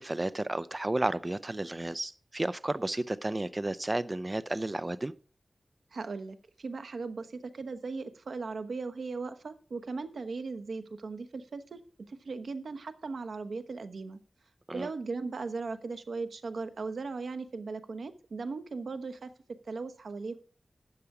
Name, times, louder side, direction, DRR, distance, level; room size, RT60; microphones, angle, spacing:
voice 1, 0.0-5.1 14.7-14.9, right 2 dB, 25° right, 15 dB, 0.5 m, -32 dB
voice 2, 5.9-14.2 14.7-19.3 19.6-20.4, right 4 dB, 90° right, 10 dB, 1.0 m, -38 dB
12.5 x 8.3 x 4.8 m, 0.41 s
wide cardioid pair, 105°, 0 cm